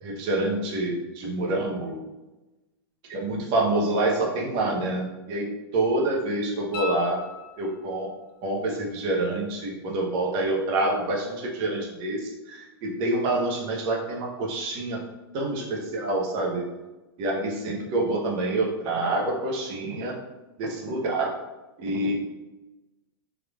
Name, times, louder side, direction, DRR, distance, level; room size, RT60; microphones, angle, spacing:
voice 1, 0.0-2.0 3.1-7.2 7.6-8.1 8.4-15.0 15.3-16.6 17.2-20.2 20.6-21.3 21.8-22.1, right 2 dB, 40° right, -1 dB, 0.9 m, -27 dB
sound 1, 6.7-8.1 10.9-11.0, left 5 dB, 40° left, 0.7 m, -36 dB
3.5 x 3.2 x 2.4 m, 1.1 s
hypercardioid pair, 140°, 13 cm